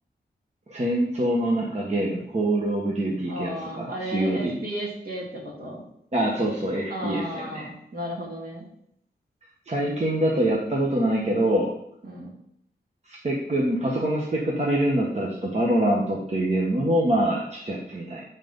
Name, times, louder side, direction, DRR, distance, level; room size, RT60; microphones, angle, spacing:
voice 1, 0.7-4.6 6.1-7.7 9.7-11.7 13.1-18.2, right 1 dB, 40° right, -3 dB, 1.3 m, -25 dB
voice 2, 3.2-5.8 6.9-8.6 12.0-12.3, equal, 55° right, -2 dB, 2.9 m, -34 dB
10.0 x 4.0 x 5.4 m, 0.72 s
wide cardioid pair, 95°, 18 cm